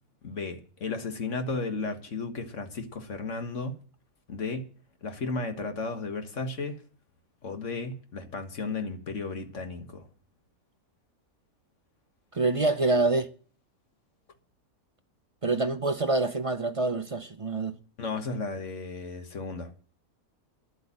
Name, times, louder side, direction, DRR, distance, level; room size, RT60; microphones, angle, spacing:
voice 1, 0.2-3.8 4.3-4.7 5.0-6.8 7.4-10.1 18.0-19.7, left 3 dB, 55° left, 1.7 m, -34 dB
voice 2, 12.3-13.3 15.4-17.7, right 2 dB, 40° right, 0.5 m, -26 dB
11.5 x 8.1 x 8.8 m
omnidirectional pair, 1.6 m